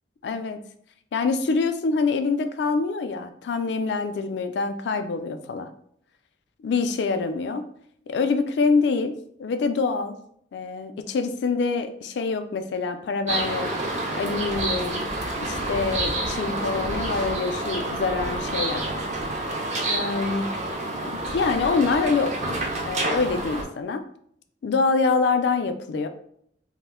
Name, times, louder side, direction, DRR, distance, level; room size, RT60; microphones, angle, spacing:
voice 1, 0.2-0.6 1.1-5.7 6.6-7.7 8.1-10.2 10.5-13.7 14.1-15.0 15.4-18.9 19.9-20.5 21.1-22.4 22.8-24.0 24.6-26.1, left 4 dB, 65° left, 8 dB, 0.3 m, -25 dB
sound 1, 13.3-23.6, right 2 dB, 40° right, 0.5 m, -28 dB
2.4 x 2.1 x 3.5 m, 0.67 s
head